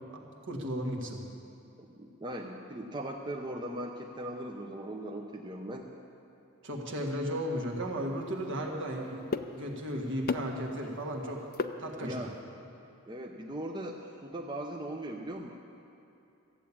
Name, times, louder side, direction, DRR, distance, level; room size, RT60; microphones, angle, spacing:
voice 1, 0.5-1.2 6.6-11.5 11.8-12.2, equal, 60° right, 0 dB, 1.7 m, -35 dB
voice 2, 1.8-5.9 12.0-12.3 13.1-15.5, right 1 dB, 20° right, 1 dB, 0.7 m, -39 dB
sound 1, 7.3-12.4, left 4 dB, 45° left, 0.5 m, -40 dB
14.0 x 8.5 x 8.5 m, 2.7 s
head